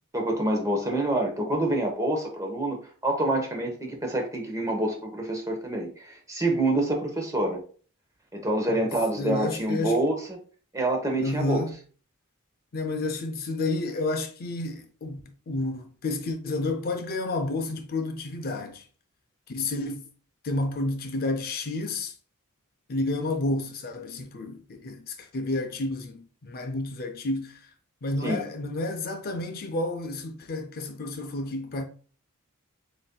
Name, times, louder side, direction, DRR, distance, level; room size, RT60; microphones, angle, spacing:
voice 1, 0.1-2.8 3.0-7.6 8.3-10.4 10.7-11.6 28.2-28.4, right 1 dB, 15° right, 0.9 m, -27 dB
voice 2, 9.2-10.0 11.2-11.7 12.7-15.2 15.5-18.9 19.5-20.1 20.4-22.1 22.9-27.6 28.0-31.8, left 2 dB, 45° left, 0.5 m, -30 dB
7.4 x 2.6 x 2.2 m
head